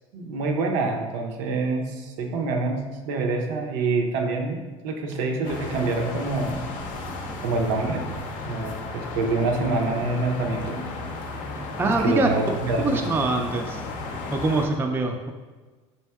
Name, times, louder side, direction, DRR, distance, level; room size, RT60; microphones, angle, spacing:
voice 1, 0.1-6.7 7.4-8.0 8.5-10.8 11.8-13.1, right 3 dB, 70° right, 2 dB, 0.5 m, -26 dB
sound 1, 5.4-14.7, left 3 dB, 55° left, 0.5 m, -34 dB
voice 2, 11.8-12.3 12.8-13.8 14.3-15.3, right 2 dB, 15° right, 3 dB, 0.3 m, -24 dB
4.3 x 2.6 x 2.2 m, 1.3 s
hypercardioid pair, 75°, 16 cm